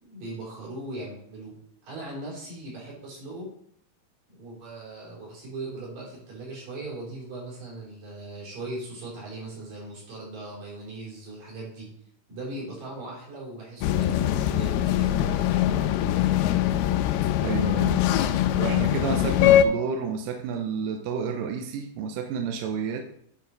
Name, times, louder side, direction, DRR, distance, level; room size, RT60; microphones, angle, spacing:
voice 1, 0.0-1.6 1.8-3.5 4.3-11.9 12.3-15.9, right 2 dB, 60° right, -5 dB, 5.4 m, -39 dB
sound 1, 13.8-19.7, left 11 dB, 90° left, 2.5 m, -22 dB
voice 2, 17.4-18.1 18.6-23.0, right 6 dB, 80° right, 4 dB, 2.2 m, -30 dB
9.9 x 4.6 x 5.3 m, 0.69 s
omnidirectional pair, 4.4 m